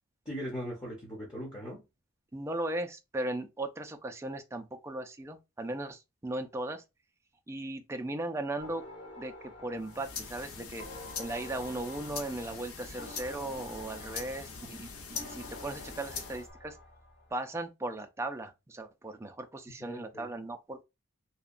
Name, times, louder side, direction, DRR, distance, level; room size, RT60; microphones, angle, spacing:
voice 1, 0.3-1.8 19.8-20.3, equal, 20° left, 0.7 m, -39 dB
voice 2, 2.3-6.8 7.5-8.9 9.2-10.9 11.2-16.8 17.3-20.8, right 2 dB, 15° right, 0.3 m, -37 dB
sound 1, 8.6-17.3, left 2 dB, 55° left, 1.0 m, -49 dB
sound 2, 9.8-16.5, left 5 dB, 90° left, 0.7 m, -43 dB
2.8 x 2.2 x 2.4 m
head